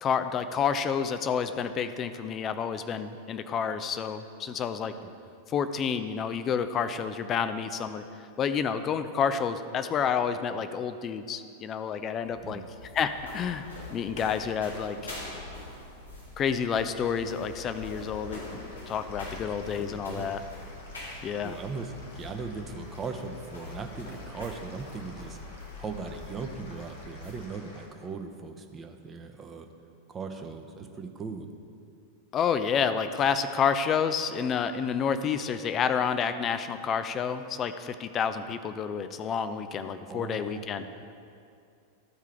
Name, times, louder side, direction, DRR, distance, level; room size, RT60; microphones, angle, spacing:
voice 1, 0.0-4.9 5.5-8.0 8.4-12.6 12.9-13.7 13.9-15.1 16.4-18.6 18.9-20.4 21.2-21.6 32.3-40.8, left 7 dB, 30° left, 10 dB, 0.4 m, -29 dB
sound 1, 12.2-27.5, left 2 dB, 75° left, 1.8 m, -44 dB
sound 2, 16.9-27.9, left 2 dB, 60° left, 1.3 m, -52 dB
voice 2, 19.7-20.3 21.4-25.4 25.8-29.7 30.1-31.5 40.1-40.6, right 4 dB, 20° right, 5 dB, 0.7 m, -39 dB
13.0 x 4.7 x 4.4 m, 2.4 s
figure-of-eight pair, 90°, 0 cm